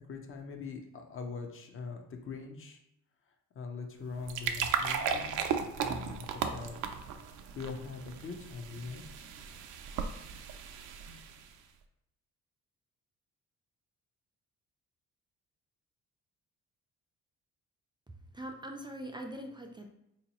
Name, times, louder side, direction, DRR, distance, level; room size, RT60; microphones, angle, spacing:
voice 1, 0.0-2.8 3.5-5.4 5.8-6.8 7.5-9.6, left 4 dB, 45° left, 4 dB, 0.7 m, -42 dB
sound 1, 4.0-11.6, right 7 dB, 80° right, 0.5 m, -36 dB
voice 2, 18.1-19.9, right 1 dB, 15° right, 2 dB, 0.4 m, -43 dB
3.8 x 2.8 x 2.9 m, 0.81 s
cardioid pair, 90°, 30 cm